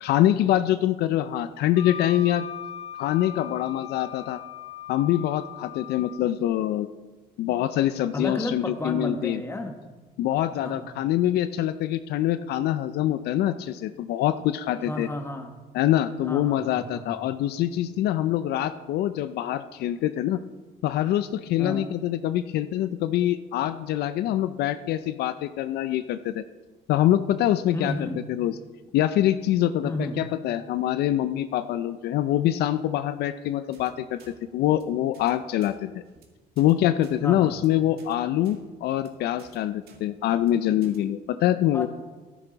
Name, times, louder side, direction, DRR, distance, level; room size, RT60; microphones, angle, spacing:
voice 1, 0.0-2.4 3.0-4.4 4.9-6.9 7.4-9.4 10.2-15.1 15.7-20.4 20.8-26.4 26.9-27.9 28.3-28.5 28.9-35.9 36.6-41.9, left 12 dB, 75° left, 12 dB, 0.5 m, -25 dB
Wind instrument woodwind instrument, 1.8-6.2, left 8 dB, 35° left, 1.6 m, -39 dB
voice 2, 8.1-9.7 10.6-10.9 14.8-15.5 16.3-17.2 21.6-21.8 27.7-28.2 29.8-30.2 37.2-37.5 41.7-41.9, left 2 dB, 15° left, 5 dB, 1.4 m, -32 dB
sound 1, 33.7-33.9 34.2-34.3 34.6-34.8 35.1-35.3 35.6-35.7 36.1-36.2 36.6-36.7 37.0-37.2 37.5-37.7 38.0-38.1 38.4-38.6 38.9-39.1 39.4-39.6 39.9-40.0 40.3-40.5 40.8-41.0, right 5 dB, 65° right, 2.0 m, -54 dB
13.5 x 10.0 x 4.0 m, 1.2 s
cardioid pair, 110°, 17 cm